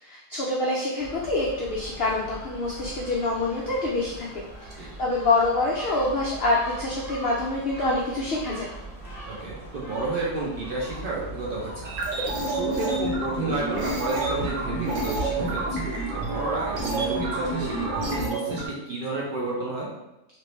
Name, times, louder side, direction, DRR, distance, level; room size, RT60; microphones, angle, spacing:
voice 1, 0.0-4.3 4.7-8.7, left 2 dB, 90° left, -4 dB, 0.5 m, -26 dB
Gull seagull, 1.0-18.0, right 2 dB, ahead, 1.0 m, -40 dB
voice 2, 9.3-12.1 12.4-15.9 16.1-19.9, right 3 dB, 80° right, -4 dB, 0.5 m, -31 dB
sound 1, 11.8-18.7, right 2 dB, 60° right, 1.0 m, -28 dB
2.9 x 2.5 x 3.1 m, 0.95 s
omnidirectional pair, 1.6 m